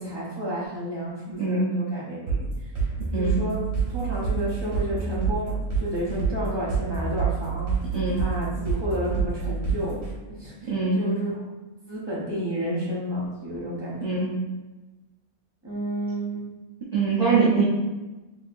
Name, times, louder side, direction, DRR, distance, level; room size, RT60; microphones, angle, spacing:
voice 1, 0.0-2.5 3.1-3.6 3.9-5.5 5.8-7.7 8.2-10.0 10.3-10.7 11.0-11.3 11.9-14.3 15.6-16.4, equal, 20° right, -7 dB, 0.9 m, -31 dB
voice 2, 1.4-1.7 3.1-3.4 7.9-8.2 10.7-11.0 14.0-14.3 16.9-17.6, right 4 dB, 40° right, -8 dB, 0.7 m, -23 dB
sound 1, 2.3-10.1, right 5 dB, 65° right, 1.5 m, -27 dB
4.2 x 2.9 x 2.6 m, 1.1 s
omnidirectional pair, 1.6 m